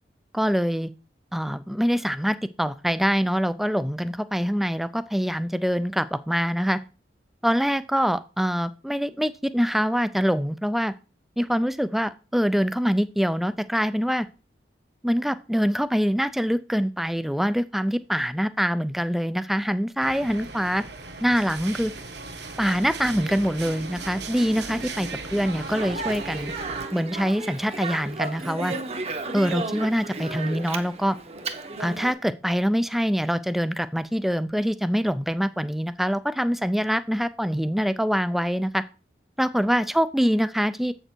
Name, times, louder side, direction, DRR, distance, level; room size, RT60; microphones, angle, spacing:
voice 1, 0.3-0.9 1.3-6.8 7.4-10.9 11.4-14.3 15.0-20.8 21.2-21.9 22.6-26.5 26.9-28.7 29.3-31.2 31.8-38.8 39.4-40.9, equal, ahead, 13 dB, 0.3 m, -24 dB
sound 1, 20.0-26.9, right 3 dB, 70° right, 1.4 m, -37 dB
Speech, 25.7-32.1, right 3 dB, 35° right, 0.8 m, -33 dB
7.9 x 6.6 x 4.5 m, 0.34 s
head